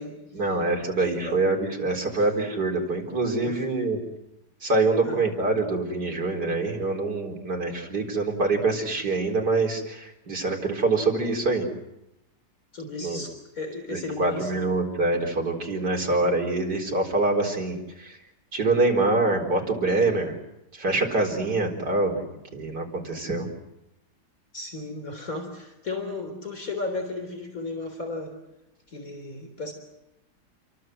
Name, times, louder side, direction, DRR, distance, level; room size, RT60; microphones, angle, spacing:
voice 1, 0.3-4.0 4.6-11.7 13.0-13.2 13.9-18.2 18.5-20.3 20.7-22.2 22.5-23.5, right 3 dB, 80° right, 2 dB, 4.9 m, -25 dB
voice 2, 1.0-1.4 2.2-2.3 3.4-3.6 5.0-5.2 12.7-14.8 15.9-16.2 24.5-28.3 28.9-29.7, left 2 dB, 55° left, 4 dB, 4.1 m, -35 dB
30.0 x 23.5 x 7.8 m, 0.87 s
omnidirectional pair, 1.8 m